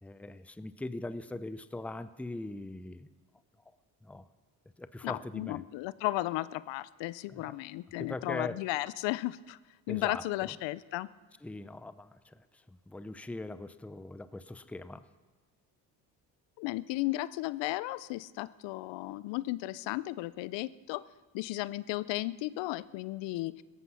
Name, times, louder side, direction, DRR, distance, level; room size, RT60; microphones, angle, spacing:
voice 1, 0.0-3.1 4.0-4.3 4.8-5.7 7.3-7.5 8.0-8.6 9.9-10.2 11.4-15.0, left 2 dB, 5° left, 13 dB, 0.6 m, -41 dB
voice 2, 5.0-9.6 9.9-11.1 16.6-21.0 21.3-23.6, left 18 dB, 75° left, 18 dB, 0.6 m, -34 dB
16.5 x 14.0 x 5.7 m, 1.3 s
supercardioid pair, 80°, 44 cm